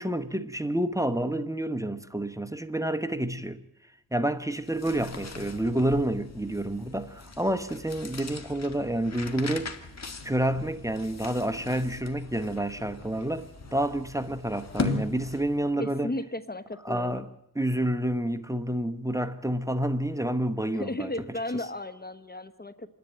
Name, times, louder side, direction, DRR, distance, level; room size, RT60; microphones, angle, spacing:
voice 1, 0.0-3.6 4.1-9.7 10.2-16.1 16.8-17.3 17.5-21.1, right 1 dB, 10° right, 1.0 m, -29 dB
sound 1, 4.5-15.7, left 4 dB, 45° left, 1.9 m, -39 dB
voice 2, 15.8-17.3 20.7-22.9, left 1 dB, 25° left, 0.9 m, -34 dB
27.5 x 10.5 x 8.9 m
wide cardioid pair, 75°, 38 cm